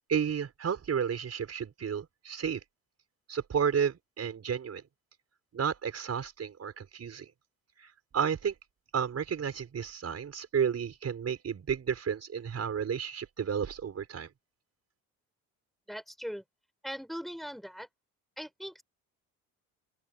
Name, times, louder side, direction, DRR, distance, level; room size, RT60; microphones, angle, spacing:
voice 1, 0.1-2.6 3.3-4.8 5.5-7.3 7.8-8.5 8.9-14.3, right 7 dB, 45° right, 5.5 m, -32 dB
voice 2, 15.9-16.4 16.8-17.9 18.4-18.8, equal, ahead, 4.7 m, -40 dB
open air
cardioid pair, 90°, 34 cm